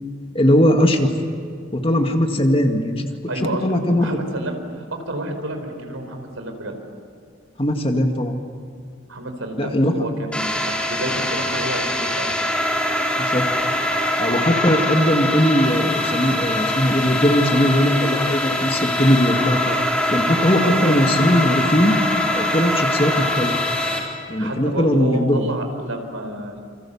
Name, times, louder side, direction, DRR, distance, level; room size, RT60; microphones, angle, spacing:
voice 1, 0.3-1.1 1.7-3.1 3.4-4.1 7.6-8.3 9.6-10.1 13.2-13.4 14.2-19.8 20.1-22.0 22.3-23.5 24.3-25.5, equal, 25° left, 4 dB, 2.0 m, -19 dB
voice 2, 3.3-6.7 9.1-12.3 20.6-21.1 24.4-26.6, right 1 dB, 90° right, 5 dB, 4.7 m, -30 dB
sound 1, 10.3-24.0, left 1 dB, 5° left, 4.4 m, -23 dB
28.5 x 27.0 x 7.2 m, 2.2 s
head